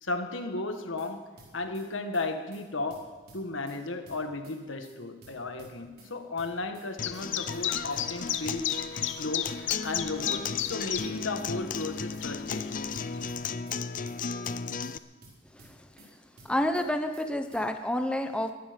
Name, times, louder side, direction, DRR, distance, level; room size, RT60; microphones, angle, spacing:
voice 1, 0.0-1.3 1.5-8.7 9.2-12.9 14.1-14.2, left 2 dB, 85° left, 6 dB, 1.6 m, -35 dB
sound 1, 0.7-1.1 1.4-1.9 2.1-2.3 2.5-2.6 2.9-3.8 4.1-4.6 4.8-4.9 5.2-6.1 6.4-6.9 7.1-7.3 7.5-7.6 7.9-8.8 9.1-9.6 9.8-9.9 10.2-11.1 11.4-11.9 12.1-12.3 12.5-12.6 12.9-13.8 14.1-14.6 14.8-14.9 15.2-16.1 16.4-16.9 17.1-17.3 17.5-17.6, right 2 dB, 50° right, 5.1 m, -53 dB
Chirp tweet, 7.0-13.5, left 10 dB, 65° left, 0.9 m, -35 dB
Acoustic guitar, 7.0-15.0, left 5 dB, 45° left, 0.5 m, -35 dB
voice 2, 15.5-15.9 16.4-18.5, left 1 dB, 5° left, 6 dB, 0.8 m, -29 dB
22.0 x 12.5 x 5.2 m, 1.3 s
head